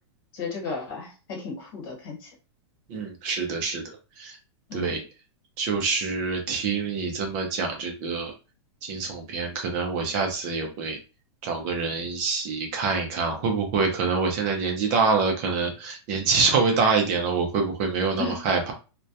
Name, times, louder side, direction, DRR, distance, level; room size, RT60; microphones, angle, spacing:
voice 1, 0.3-2.3 4.7-5.0 18.2-18.4, left 4 dB, 45° left, -1 dB, 1.1 m, -34 dB
voice 2, 2.9-3.8 4.2-4.4 4.7-5.0 5.6-8.3 8.8-11.0 11.4-18.7, right 4 dB, 35° right, 2 dB, 0.5 m, -26 dB
2.2 x 2.1 x 2.6 m, 0.32 s
supercardioid pair, 160°, 15 cm